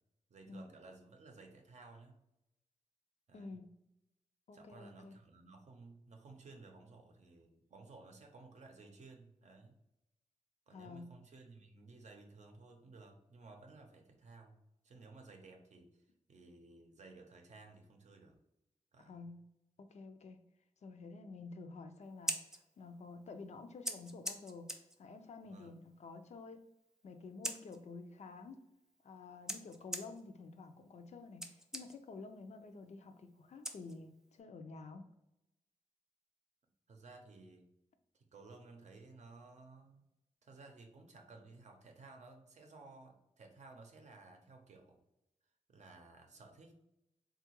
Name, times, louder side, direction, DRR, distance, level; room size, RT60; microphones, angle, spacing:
voice 1, 0.3-2.2 3.3-3.6 4.5-9.8 10.7-14.6 14.8-18.4 18.9-19.2 25.4-25.8 36.9-37.7 38.1-40.0 40.4-45.0 45.7-46.8, right 3 dB, 65° right, 3 dB, 0.6 m, -57 dB
voice 2, 3.3-3.7 4.5-5.2 10.7-11.1 19.1-19.4 19.8-20.4 20.8-22.4 22.8-24.7 25.0-26.6 27.0-28.6 29.0-35.1, left 3 dB, 60° left, 7 dB, 0.4 m, -50 dB
Scissors, 22.0-34.4, equal, 5° right, 0.4 m, -47 dB
3.6 x 2.3 x 2.9 m, 0.87 s
wide cardioid pair, 105°, 13 cm